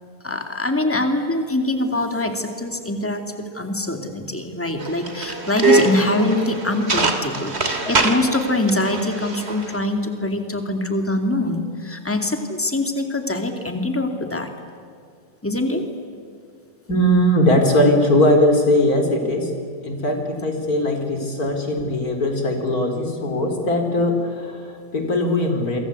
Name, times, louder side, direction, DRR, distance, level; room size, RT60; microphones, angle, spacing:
voice 1, 0.2-14.5 15.4-15.8, left 2 dB, 5° left, 5 dB, 2.5 m, -24 dB
sound 1, 4.8-9.8, right 3 dB, 35° right, 3.0 m, -23 dB
voice 2, 16.9-19.5 19.8-25.8, left 1 dB, 50° left, 4 dB, 4.6 m, -19 dB
27.5 x 24.5 x 8.5 m, 2.4 s
omnidirectional pair, 2.0 m